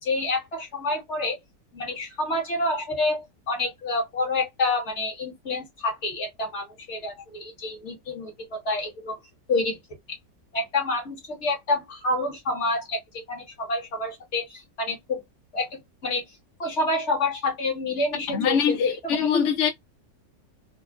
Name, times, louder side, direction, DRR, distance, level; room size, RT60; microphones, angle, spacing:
voice 1, 0.0-1.4 1.7-9.2 9.5-9.8 10.5-15.2 15.5-15.7 16.0-16.2 16.6-19.3, left 2 dB, 45° left, 1.5 m, -28 dB
voice 2, 18.3-19.7, left 7 dB, 70° left, 0.7 m, -23 dB
3.6 x 2.0 x 2.3 m
omnidirectional pair, 1.8 m